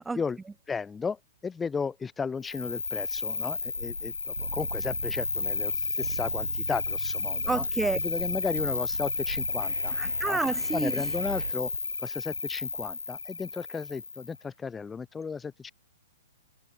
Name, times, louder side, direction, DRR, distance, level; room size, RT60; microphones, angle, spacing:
voice 1, 0.7-7.6 7.9-9.9 10.2-10.4 10.7-11.7 12.0-15.7, left 5 dB, 10° left, 3.2 m, -34 dB
Cricket, 2.4-14.4, left 4 dB, 75° left, 1.1 m, -32 dB
sound 1, 4.4-11.5, right 7 dB, 60° right, 2.1 m, -40 dB
voice 2, 7.5-8.0 10.0-10.9, right 3 dB, 5° right, 0.5 m, -29 dB
figure-of-eight pair, 110°, 0 cm